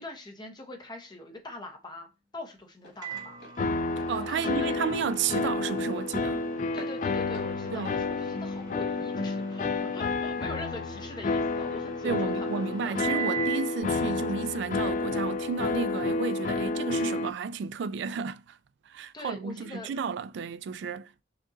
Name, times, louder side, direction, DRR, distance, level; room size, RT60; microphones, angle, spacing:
voice 1, 0.0-3.4 4.1-4.8 6.7-13.3 19.1-19.9, left 2 dB, 25° left, 1.0 m, -43 dB
Walk footsteps, 0.6-9.2, left 1 dB, 60° left, 2.1 m, -52 dB
Microwave oven, 3.0-13.8, right 7 dB, 20° right, 0.7 m, -41 dB
sound 1, 3.6-17.3, left 3 dB, 40° left, 0.3 m, -30 dB
voice 2, 4.1-6.4 7.7-8.0 12.0-18.4 18.9-21.2, right 5 dB, 65° right, 0.3 m, -32 dB
6.0 x 2.5 x 2.7 m
head